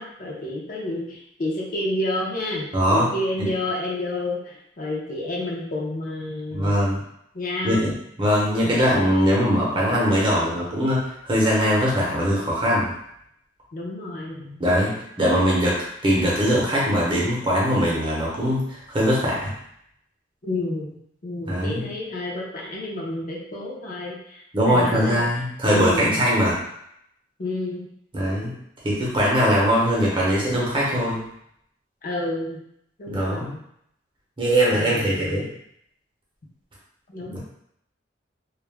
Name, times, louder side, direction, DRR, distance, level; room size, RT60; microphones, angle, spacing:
voice 1, 0.0-6.7 7.3-7.8 8.6-8.7 13.7-14.6 20.4-20.9 21.2-25.2 25.6-26.2 27.4-27.8 32.0-32.6 33.0-33.6 34.7-35.5 37.1-37.4, left 2 dB, 45° left, -3 dB, 0.5 m, -30 dB
voice 2, 2.7-3.1 3.4-3.5 6.5-7.0 7.6-7.9 8.2-12.9 14.6-15.8 16.0-19.5 21.5-21.8 24.5-26.6 28.1-28.5 28.8-31.2 33.1-33.5 34.4-35.5 37.3-37.4, equal, 25° right, -5 dB, 0.7 m, -21 dB
2.3 x 2.1 x 3.3 m, 0.75 s
head